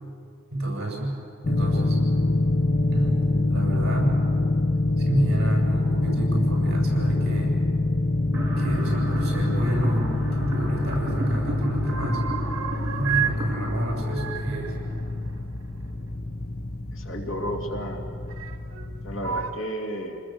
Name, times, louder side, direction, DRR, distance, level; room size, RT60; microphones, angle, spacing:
voice 1, 0.5-1.1 1.5-2.0 2.9-4.2 5.0-7.6 8.6-10.1 10.4-12.2 12.9-14.8, right 1 dB, 55° right, -1 dB, 7.9 m, -29 dB
sound 1, 1.4-19.6, left 2 dB, 40° left, 0.9 m, -26 dB
sound 2, 8.3-15.4, right 2 dB, 15° right, 6.6 m, -35 dB
sound 3, 10.3-11.2 11.5-13.4 13.7-16.2 17.2-17.3 18.3-18.9 19.2-19.5, right 8 dB, 75° right, 2.0 m, -32 dB
voice 2, 16.9-18.0 19.0-20.2, equal, 65° left, 1 dB, 2.7 m, -32 dB
28.5 x 20.0 x 7.9 m, 2.6 s
head